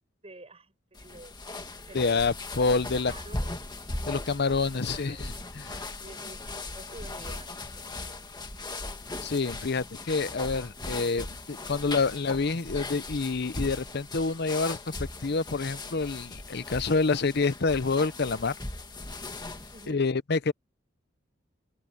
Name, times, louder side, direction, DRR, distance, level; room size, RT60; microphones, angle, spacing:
voice 1, 0.2-1.5 1.9-2.2 2.7-3.6 4.6-5.2 6.0-8.2 19.7-20.1, right 2 dB, 30° right, 6.5 m, -49 dB
sound 1, 0.9-19.9, left 2 dB, 20° left, 1.9 m, -38 dB
voice 2, 1.9-3.1 4.1-5.8 9.2-14.8 15.2-18.5 19.9-20.5, left 4 dB, 55° left, 0.8 m, -27 dB
head